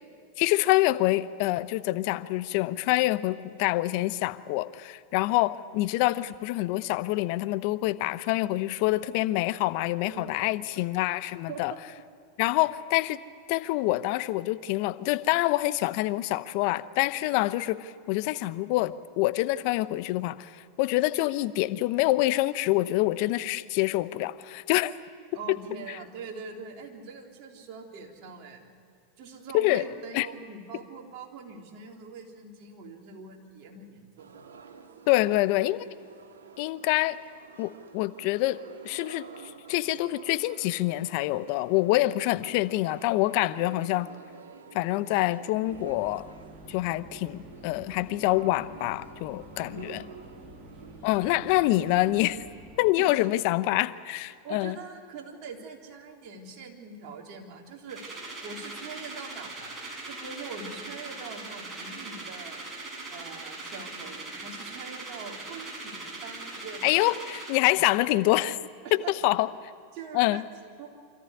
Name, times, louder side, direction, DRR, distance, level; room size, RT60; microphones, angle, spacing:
voice 1, 0.4-11.7 12.4-13.2 13.5-20.5 20.8-24.9 25.5-25.6 29.5-29.8 30.1-30.3 35.1-35.9 36.6-37.2 37.6-44.1 44.7-46.2 46.7-50.0 51.0-52.4 52.8-54.8 66.8-68.6 68.9-69.5 70.1-70.4, left 17 dB, 55° left, 14 dB, 0.9 m, -26 dB
voice 2, 10.1-10.9 11.5-11.6 25.3-28.7 29.2-34.4 49.9-50.5 53.0-53.5 54.4-58.0 58.4-59.7 60.0-62.7 63.1-67.2 68.8-69.3 69.9-70.9, right 5 dB, 50° right, 0 dB, 3.8 m, -43 dB
sound 1, 34.2-52.2, right 6 dB, 85° right, 1.7 m, -49 dB
sound 2, 45.7-52.9, right 1 dB, 10° right, 2.4 m, -49 dB
sound 3, 57.9-67.6, right 2 dB, 30° right, 7.2 m, -40 dB
25.5 x 14.0 x 9.9 m, 2.4 s
hypercardioid pair, 100°, 0 cm